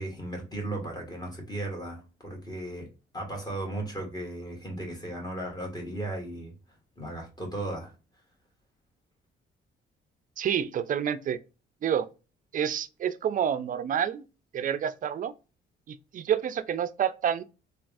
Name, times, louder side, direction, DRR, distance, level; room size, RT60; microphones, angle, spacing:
voice 1, 0.0-2.9 3.1-6.5 7.0-7.9, right 1 dB, 20° left, 1.6 m, -36 dB
voice 2, 10.4-11.4 11.8-12.1 12.5-14.3 14.5-15.3 15.9-17.4, right 9 dB, 45° right, 0.4 m, -28 dB
3.4 x 2.3 x 2.4 m
cardioid pair, 90°, 20 cm